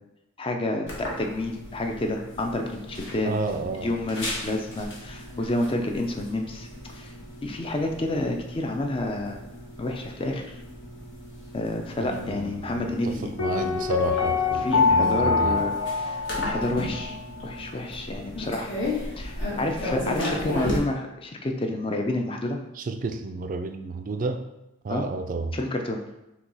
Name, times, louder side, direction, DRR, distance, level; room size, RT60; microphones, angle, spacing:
voice 1, 0.4-3.3 3.8-6.7 6.9-7.1 7.4-9.4 9.8-10.6 11.5-13.3 14.6-17.2 17.4-18.7 19.2-22.6 24.9-25.0 25.5-26.0, left 1 dB, 25° left, 3 dB, 0.5 m, -29 dB
sound 1, 0.9-20.8, left 1 dB, 60° left, 1.3 m, -36 dB
voice 2, 3.2-3.9 12.0-15.7 22.8-24.4 24.8-25.6, right 3 dB, 40° right, 7 dB, 0.3 m, -31 dB
Piano, 13.4-17.2 17.4-17.5, left 4 dB, 80° left, 0.7 m, -24 dB
5.7 x 2.3 x 3.9 m, 0.90 s
head